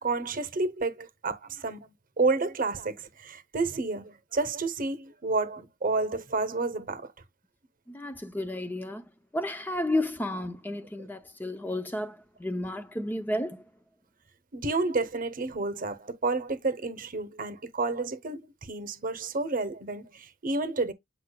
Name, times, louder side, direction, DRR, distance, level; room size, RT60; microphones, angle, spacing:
voice 1, 0.0-1.9 2.2-7.1 14.5-20.9, right 3 dB, 45° right, 0.8 m, -30 dB
voice 2, 7.9-9.0 9.3-13.6, left 1 dB, 10° left, 0.5 m, -32 dB
8.1 x 5.6 x 2.2 m
head